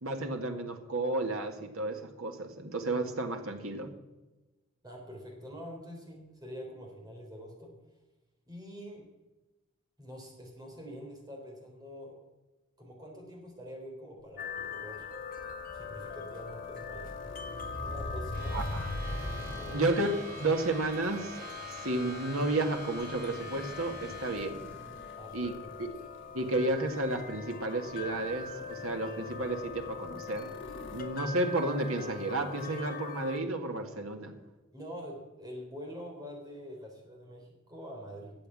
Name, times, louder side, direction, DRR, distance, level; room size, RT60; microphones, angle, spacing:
voice 1, 0.0-3.9 18.5-18.9 19.7-20.1 20.4-21.4 21.8-24.6 25.3-25.5 25.8-25.9 26.3-30.5 30.9-34.3, right 2 dB, 90° right, 4 dB, 2.0 m, -32 dB
voice 2, 4.8-7.7 8.5-9.1 10.0-12.2 12.8-15.1 15.7-17.1 17.8-18.7 19.6-19.9 25.2-25.7 34.7-38.3, equal, 20° right, 0 dB, 3.7 m, -45 dB
sound 1, 14.4-20.0 20.8-21.1 23.0-26.8 27.3-27.4 27.8-31.0, left 1 dB, 65° left, 2.7 m, -43 dB
sound 2, 14.4-33.4, left 5 dB, 40° left, 1.3 m, -42 dB
sound 3, 18.3-24.5, right 2 dB, 45° right, 5.0 m, -46 dB
13.0 x 8.2 x 8.6 m, 1.1 s
head